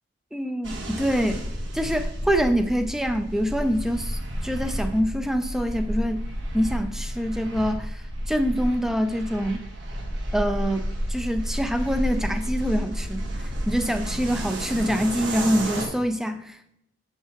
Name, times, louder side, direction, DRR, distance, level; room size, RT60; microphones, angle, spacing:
voice 1, 0.3-1.4 1.7-6.3 6.5-9.6 10.3-16.8, equal, ahead, 8 dB, 0.4 m, -25 dB
sound 1, 0.6-15.9, equal, 75° right, 1.4 m, -31 dB
7.4 x 5.7 x 2.9 m, 0.76 s
head